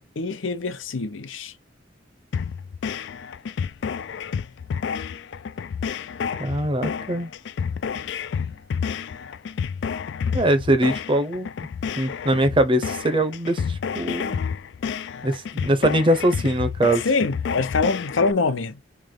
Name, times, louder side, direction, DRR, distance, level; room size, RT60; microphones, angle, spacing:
voice 1, 0.0-1.5 17.0-18.8, left 4 dB, 85° left, 0.7 m, -24 dB
sound 1, 2.3-18.3, left 6 dB, 65° left, 0.3 m, -30 dB
voice 2, 6.4-7.3 10.3-11.5 12.0-14.4 15.2-17.1, right 1 dB, 25° right, 0.7 m, -22 dB
3.3 x 3.0 x 3.7 m
head